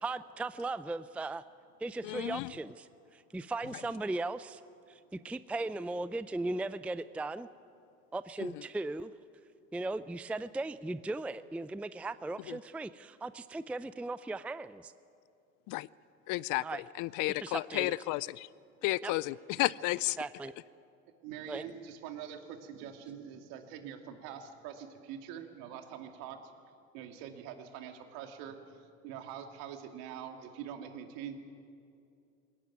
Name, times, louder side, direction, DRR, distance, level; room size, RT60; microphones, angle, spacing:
voice 1, 0.0-1.4 1.8-4.6 4.9-7.5 8.1-9.1 9.7-14.9 16.6-16.8 17.4-17.9 19.0-19.1 20.2-20.5 21.5-21.6, right 2 dB, 5° right, 15 dB, 0.5 m, -37 dB
voice 2, 2.0-2.5 8.4-8.5 12.5-12.6 15.7-15.9 16.3-18.5 18.8-20.2, left 19 dB, 50° left, 22 dB, 0.6 m, -32 dB
voice 3, 21.2-26.4 26.9-28.8 29.0-31.4, right 9 dB, 65° right, 5 dB, 2.6 m, -44 dB
21.5 x 18.0 x 9.3 m, 2.5 s
hypercardioid pair, 75°, 40 cm